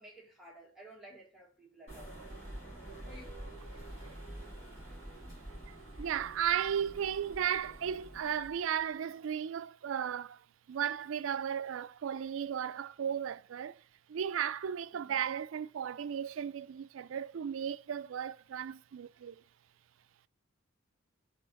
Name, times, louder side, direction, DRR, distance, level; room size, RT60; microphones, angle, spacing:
voice 1, 0.0-2.2 3.1-3.4 15.0-15.2, right 1 dB, ahead, 1.7 m, -54 dB
sound 1, 1.9-8.8, right 1 dB, 35° left, 3.1 m, -47 dB
voice 2, 5.7-13.8 14.1-19.4, right 8 dB, 80° right, 0.4 m, -35 dB
4.6 x 4.2 x 5.1 m
head